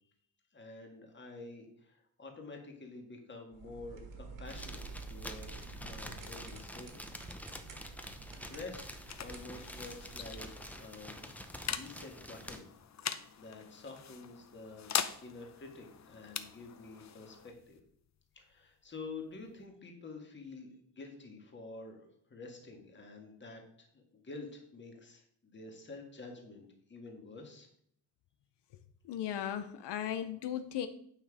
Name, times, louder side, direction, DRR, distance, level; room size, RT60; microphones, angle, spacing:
voice 1, 0.5-5.5 5.8-7.2 8.5-10.5 10.8-11.2 11.7-12.6 13.4-14.9 15.2-17.8 18.3-27.7, left 3 dB, 25° left, 2 dB, 1.8 m, -49 dB
sound 1, 3.5-10.8, right 4 dB, 50° right, 1.7 m, -49 dB
sound 2, 4.5-12.6, left 1 dB, 5° left, 0.6 m, -47 dB
sound 3, 8.5-19.7, left 8 dB, 45° left, 0.6 m, -43 dB
voice 2, 29.0-30.9, left 10 dB, 85° left, 10 dB, 0.7 m, -36 dB
9.2 x 5.7 x 4.8 m, 0.65 s
wide cardioid pair, 165°, 40 cm